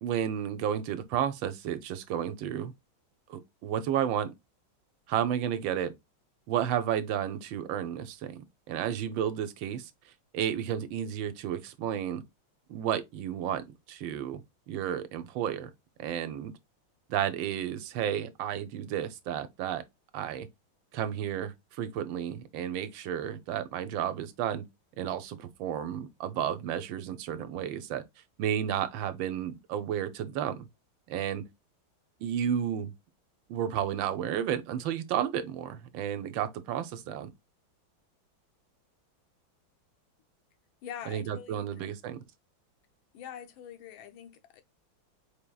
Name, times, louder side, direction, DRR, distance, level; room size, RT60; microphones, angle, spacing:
voice 1, 0.0-2.7 3.3-4.3 5.1-5.9 6.5-9.9 10.3-12.2 12.7-14.4 14.7-15.7 16.0-16.5 17.1-19.8 20.1-20.5 20.9-24.6 25.0-28.0 28.4-30.7 31.1-31.4 32.2-32.9 33.5-37.3 41.1-42.2, right 9 dB, 75° right, 1.3 m, -32 dB
voice 2, 40.8-41.9 43.1-44.6, left 9 dB, 85° left, 1.5 m, -44 dB
4.6 x 3.4 x 2.2 m
omnidirectional pair, 2.2 m